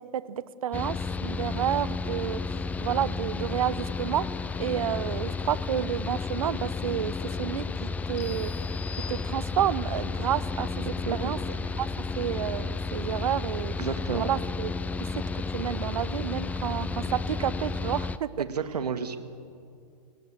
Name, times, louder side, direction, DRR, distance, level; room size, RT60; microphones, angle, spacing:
voice 1, 0.1-4.3 4.6-7.1 7.4-8.5 9.1-11.4 11.8-13.7 14.1-14.7 15.5-18.3, right 10 dB, 60° right, 17 dB, 1.0 m, -30 dB
Mechanical fan, 0.7-18.2, left 4 dB, 5° left, 0.5 m, -32 dB
sound 1, 8.2-9.9, left 6 dB, 30° left, 3.9 m, -44 dB
voice 2, 13.8-14.3 18.4-19.2, right 6 dB, 75° right, 9 dB, 2.0 m, -31 dB
29.0 x 18.5 x 7.5 m, 2.4 s
hypercardioid pair, 120°, 21 cm